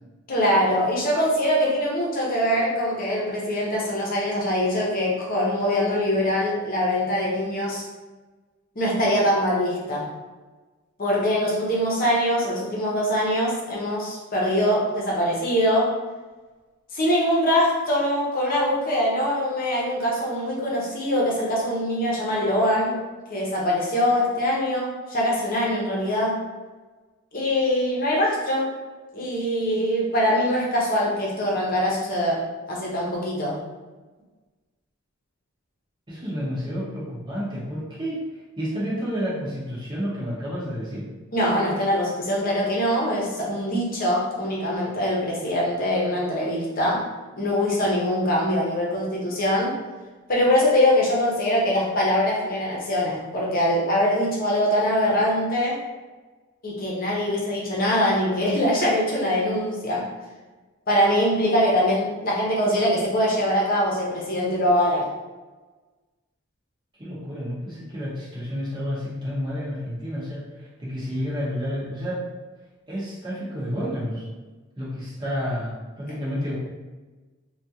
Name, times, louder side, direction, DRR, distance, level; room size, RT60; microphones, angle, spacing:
voice 1, 0.3-7.8 8.7-10.1 11.0-15.9 16.9-23.0 23.3-26.4 27.3-28.7 29.1-32.4 32.7-33.6 41.3-47.0 47.4-49.7 50.3-55.8 56.6-60.0 60.9-65.0, equal, 45° left, -4 dB, 0.8 m, -23 dB
voice 2, 36.1-41.1 67.0-72.2 72.9-74.3 74.8-76.6, equal, 20° right, -9 dB, 0.8 m, -30 dB
3.5 x 2.4 x 2.8 m, 1.3 s
head